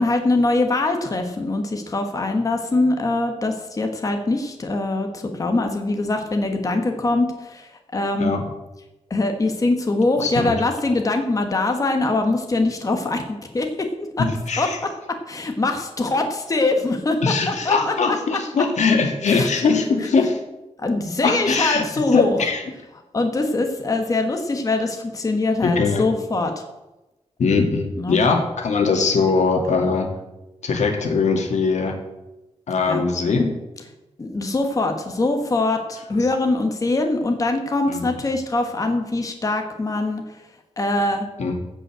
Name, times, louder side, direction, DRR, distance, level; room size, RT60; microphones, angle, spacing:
voice 1, 0.0-8.3 9.1-14.3 14.6-18.4 19.3-19.5 20.0-20.1 20.8-22.4 23.1-26.6 28.0-28.2 32.8-33.0 34.2-40.4 40.8-41.3, left 2 dB, 30° left, 4 dB, 1.3 m, -23 dB
voice 2, 10.2-10.6 14.2-14.8 17.2-20.4 21.2-21.9 22.1-22.6 25.6-26.0 27.4-30.1 30.6-31.9 32.7-33.5 36.2-36.3 37.9-38.0 41.4-41.6, left 4 dB, 85° left, 3 dB, 2.0 m, -21 dB
15.5 x 5.4 x 8.0 m, 1.0 s
wide cardioid pair, 175°, 12 cm